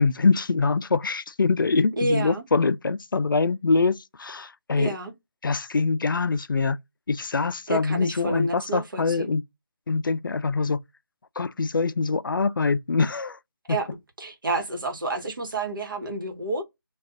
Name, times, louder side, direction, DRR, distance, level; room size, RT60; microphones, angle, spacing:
voice 1, 0.0-5.0 5.4-6.8 7.1-9.4 9.9-10.8 11.4-13.4, left 4 dB, 65° left, 0.4 m, -24 dB
voice 2, 2.0-2.4 4.7-5.1 7.7-9.3 13.7-13.9 14.2-16.6, right 2 dB, 60° right, 1.2 m, -29 dB
2.5 x 2.3 x 3.5 m
figure-of-eight pair, 170°, 12 cm